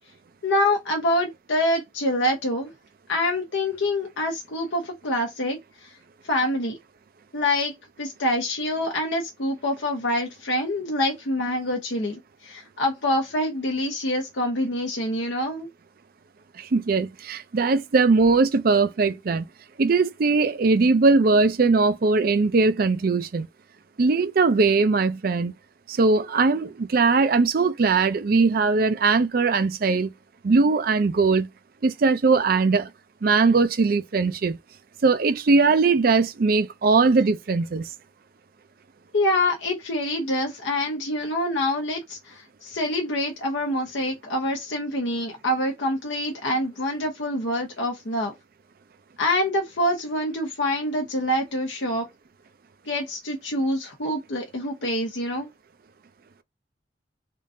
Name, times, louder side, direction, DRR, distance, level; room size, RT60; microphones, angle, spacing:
voice 1, 0.4-2.7 3.1-5.9 6.2-6.8 7.3-15.7 39.1-48.3 49.2-52.0 52.9-55.5, left 1 dB, 70° left, 0.8 m, -26 dB
voice 2, 16.6-19.5 19.8-23.5 24.0-25.5 25.9-30.1 30.4-31.5 31.8-32.9 33.2-34.6 35.0-37.9, right 4 dB, 50° right, 0.4 m, -20 dB
3.6 x 2.5 x 2.6 m
head